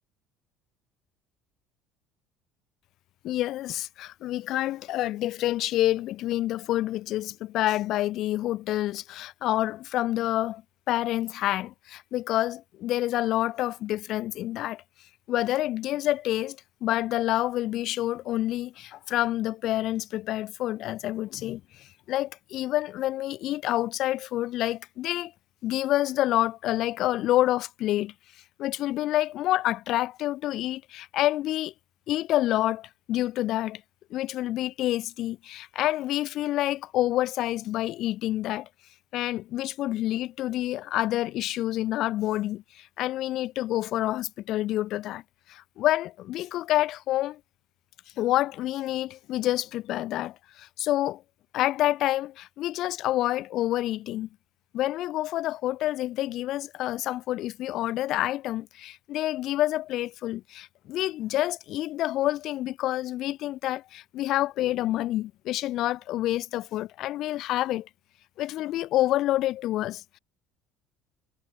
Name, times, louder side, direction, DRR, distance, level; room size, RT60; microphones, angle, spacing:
voice 1, 3.2-10.6 10.9-14.8 15.3-25.3 25.6-28.1 28.6-31.7 32.1-33.8 34.1-38.7 39.1-45.2 45.5-47.4 48.2-51.2 51.5-54.3 54.7-67.9 68.4-70.2, left 14 dB, 55° left, 0.3 m, -28 dB
hypercardioid pair, 60°, 0 cm